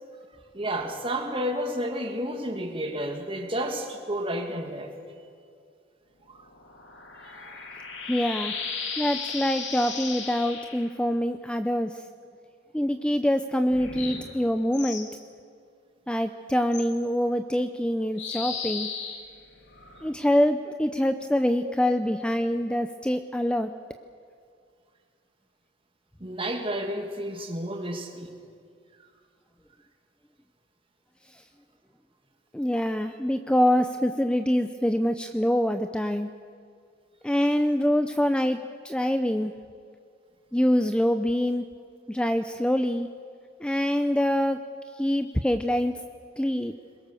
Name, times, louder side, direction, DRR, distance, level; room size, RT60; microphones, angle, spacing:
voice 1, 0.5-4.9 6.3-6.4 7.3-7.5 21.6-21.7 26.2-28.3, equal, 30° right, 3 dB, 2.4 m, -31 dB
sound 1, 6.4-10.9 13.7-15.1 16.7-16.9 18.2-20.1, left 5 dB, 80° left, 2.8 m, -36 dB
voice 2, 8.1-8.5 9.0-12.0 12.7-15.1 16.1-18.9 20.0-23.7 31.3-31.4 32.5-36.3 37.2-38.6 38.8-39.5 40.5-41.6 42.1-43.1 43.6-44.6 45.0-45.9 46.4-46.7, equal, 5° left, 8 dB, 0.5 m, -25 dB
22.5 x 21.5 x 7.0 m, 2.3 s
head